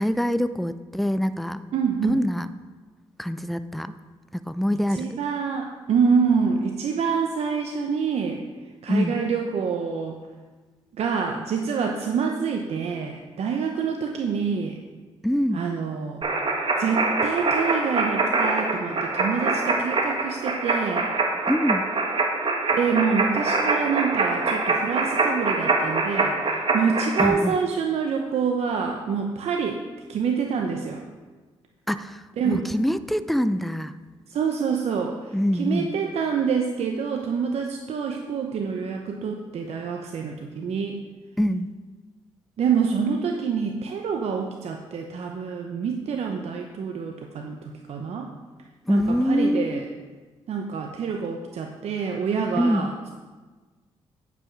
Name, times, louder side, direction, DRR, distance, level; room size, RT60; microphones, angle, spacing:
voice 1, 0.0-1.6 2.0-2.5 3.2-3.9 4.3-5.2 8.9-9.2 15.2-15.6 21.5-21.8 27.2-27.6 31.9-33.9 35.3-35.9 41.4-41.7 48.9-49.9 52.6-52.9, equal, ahead, 12 dB, 0.5 m, -24 dB
voice 2, 1.7-2.1 4.9-8.4 8.8-10.2 11.0-14.8 15.5-16.2 16.8-21.1 22.7-26.4 26.7-29.8 30.1-31.0 32.4-32.7 34.3-41.0 42.6-48.3 48.9-49.8 50.5-52.9, right 6 dB, 65° right, 3 dB, 0.8 m, -26 dB
sound 1, 16.2-27.3, right 3 dB, 50° right, 1.5 m, -24 dB
9.3 x 5.9 x 5.9 m, 1.3 s
supercardioid pair, 65°, 11 cm